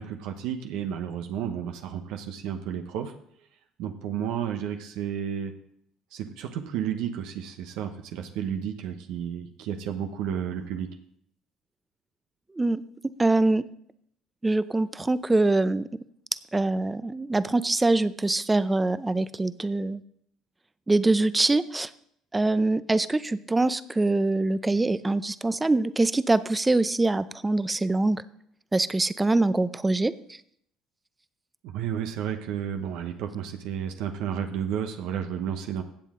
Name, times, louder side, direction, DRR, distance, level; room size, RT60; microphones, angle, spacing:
voice 1, 0.0-3.1 3.8-5.5 6.1-10.9 31.6-35.8, right 9 dB, 75° right, 6 dB, 1.0 m, -32 dB
voice 2, 12.6-13.6 14.4-15.9 16.5-20.0 20.9-21.9 22.3-28.2 28.7-30.1, right 2 dB, 15° right, 15 dB, 0.5 m, -24 dB
16.0 x 7.5 x 3.7 m, 0.71 s
supercardioid pair, 95°, 0 cm